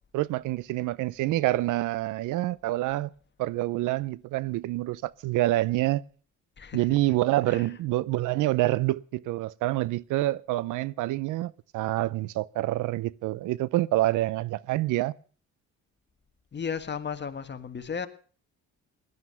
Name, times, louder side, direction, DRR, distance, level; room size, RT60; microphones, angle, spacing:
voice 1, 0.1-3.1 3.4-6.0 6.7-15.1, right 17 dB, 90° right, 0.6 m, -27 dB
voice 2, 16.5-18.1, left 6 dB, 35° left, 1.7 m, -34 dB
17.5 x 11.5 x 5.7 m
cardioid pair, 90°, 30 cm